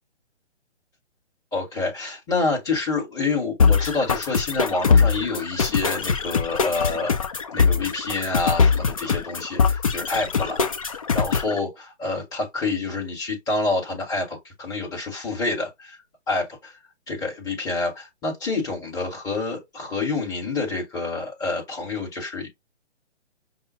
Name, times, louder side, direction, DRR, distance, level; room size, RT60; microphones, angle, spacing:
voice 1, 1.5-7.1 7.5-10.6 11.1-16.0 16.3-16.7 17.1-22.5, left 3 dB, 10° left, 1.2 m, -27 dB
sound 1, 3.6-11.6, left 5 dB, 30° left, 0.4 m, -22 dB
5.4 x 2.0 x 2.6 m
figure-of-eight pair, 140°, 35 cm